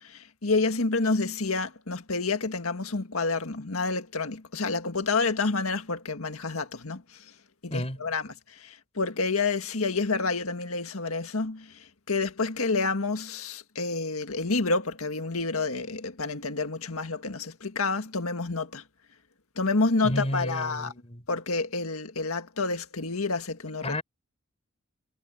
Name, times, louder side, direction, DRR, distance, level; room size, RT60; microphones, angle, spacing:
voice 1, 0.0-7.0 7.6-18.8 19.6-20.9 21.3-24.0, left 3 dB, 80° left, 1.8 m, -29 dB
voice 2, 20.0-21.2 23.8-24.0, left 1 dB, 30° left, 4.5 m, -31 dB
head